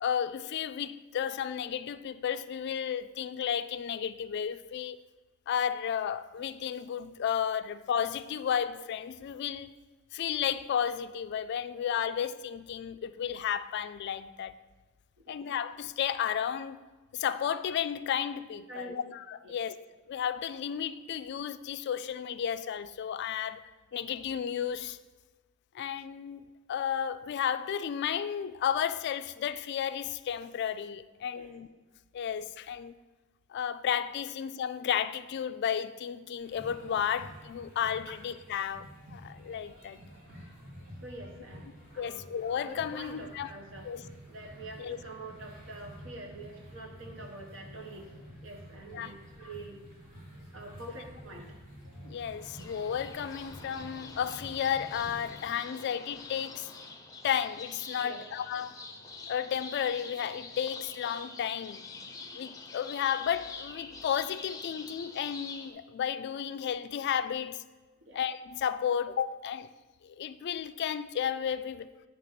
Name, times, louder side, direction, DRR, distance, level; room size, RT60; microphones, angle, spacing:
voice 1, 0.0-5.0 5.5-9.7 10.1-14.6 15.3-16.8 17.1-19.8 20.1-23.6 23.9-25.0 25.7-26.4 26.7-31.7 32.1-32.9 33.5-40.0 42.0-43.5 43.8-44.0 44.8-45.0 48.9-49.1 52.0-56.7 57.2-58.7 59.3-61.8 62.3-67.6 68.1-69.7 70.0-71.9, left 8 dB, 55° left, 13 dB, 0.3 m, -33 dB
voice 2, 18.7-19.0 19.4-19.6 31.3-31.5 41.0-42.2 42.6-43.9 44.3-48.1 48.4-49.8 50.5-51.6 58.0-58.2 58.5-58.6 68.0-68.2, right 2 dB, 65° right, 0 dB, 1.3 m, -46 dB
sound 1, 36.4-55.4, equal, 45° right, 2.7 m, -50 dB
sound 2, 52.2-65.7, left 4 dB, 20° left, 0.6 m, -46 dB
9.0 x 3.4 x 5.8 m, 1.2 s
head